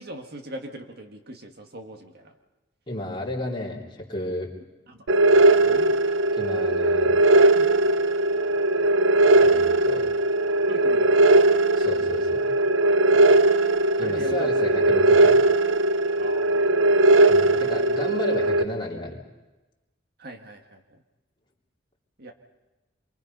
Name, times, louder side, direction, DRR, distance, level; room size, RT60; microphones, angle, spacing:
voice 1, 0.0-2.3 4.9-5.0 5.4-6.1 7.6-7.7 10.7-11.7 14.0-14.5 16.2-17.0 20.2-21.0 22.2-22.3, equal, 55° right, 4 dB, 1.9 m, -41 dB
voice 2, 2.9-4.5 6.3-7.2 9.4-10.1 11.7-12.5 14.0-15.4 17.3-19.2, left 1 dB, 25° left, -3 dB, 3.4 m, -32 dB
sound 1, 5.1-18.6, right 2 dB, 85° right, 0.7 m, -19 dB
26.5 x 24.0 x 5.4 m, 1.1 s
head